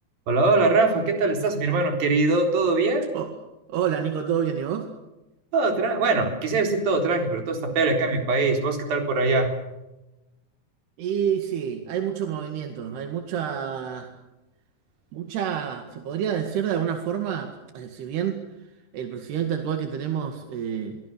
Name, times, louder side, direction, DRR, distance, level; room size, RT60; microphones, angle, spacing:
voice 1, 0.3-3.1 5.5-9.6, right 3 dB, 65° right, 5 dB, 5.7 m, -22 dB
voice 2, 3.7-4.9 11.0-14.2 15.1-18.4 18.9-21.0, right 8 dB, 85° right, 5 dB, 4.1 m, -28 dB
29.5 x 23.5 x 6.9 m, 0.98 s
omnidirectional pair, 4.6 m